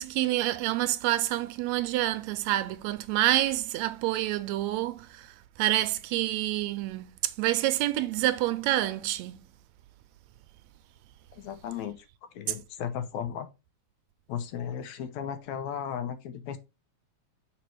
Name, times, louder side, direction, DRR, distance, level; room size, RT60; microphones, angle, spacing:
voice 1, 0.0-9.4, right 14 dB, 80° right, 1.7 m, -28 dB
voice 2, 11.3-12.1 12.3-13.5 14.3-16.6, left 8 dB, 80° left, 2.1 m, -35 dB
6.1 x 4.1 x 4.6 m
omnidirectional pair, 3.3 m